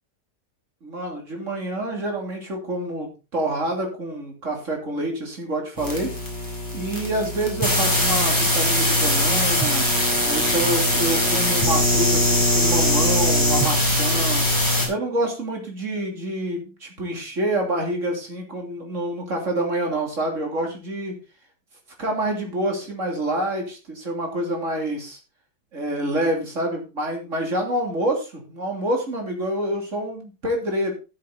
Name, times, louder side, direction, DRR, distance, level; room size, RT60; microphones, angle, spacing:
voice 1, 0.8-6.1 6.7-9.9 10.2-14.5 14.9-21.2 22.0-25.2 25.7-30.9, right 1 dB, 50° right, 2 dB, 3.4 m, -27 dB
sound 1, 5.8-14.9, left 1 dB, 10° left, 4.9 m, -21 dB
13.5 x 7.6 x 3.9 m, 0.30 s
omnidirectional pair, 1.7 m